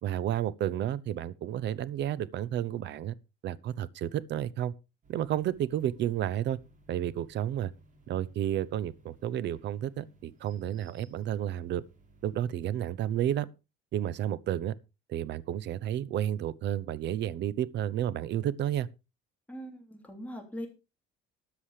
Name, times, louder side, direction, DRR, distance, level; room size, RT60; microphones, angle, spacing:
voice 1, 0.0-3.1 3.4-4.7 5.1-6.6 6.9-7.7 8.1-11.8 12.2-13.5 13.9-14.7 15.1-18.9, right 11 dB, 55° right, 0.8 m, -31 dB
sound 1, 5.0-12.6, right 2 dB, 40° right, 3.4 m, -60 dB
voice 2, 19.5-20.7, equal, 5° left, 3.3 m, -41 dB
13.5 x 8.5 x 4.9 m
cardioid pair, 135°, 21 cm